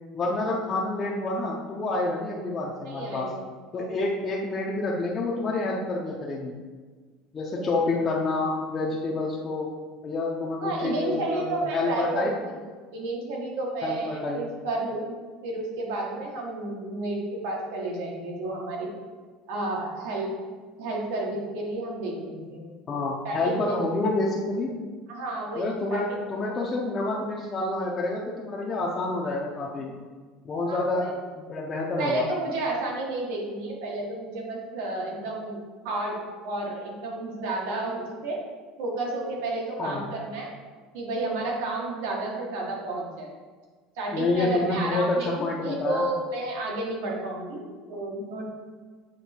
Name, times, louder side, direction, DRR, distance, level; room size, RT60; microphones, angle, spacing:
voice 1, 0.1-3.3 3.7-6.5 7.3-9.7 10.0-12.3 13.8-14.5 22.9-24.7 25.5-30.0 30.4-32.2 39.8-40.1 44.1-46.0, left 2 dB, 25° left, -3 dB, 0.6 m, -28 dB
voice 2, 2.8-3.5 3.7-4.0 7.5-7.7 10.6-12.3 12.9-15.1 15.4-18.9 19.5-20.3 20.8-22.7 23.2-23.8 25.1-26.7 30.7-31.1 32.0-35.6 35.8-36.2 36.4-38.4 38.8-40.5 40.9-43.3 43.9-45.3 45.6-48.5, right 2 dB, 80° right, -2 dB, 1.5 m, -31 dB
7.3 x 3.2 x 4.4 m, 1.5 s
cardioid pair, 165°, 0 cm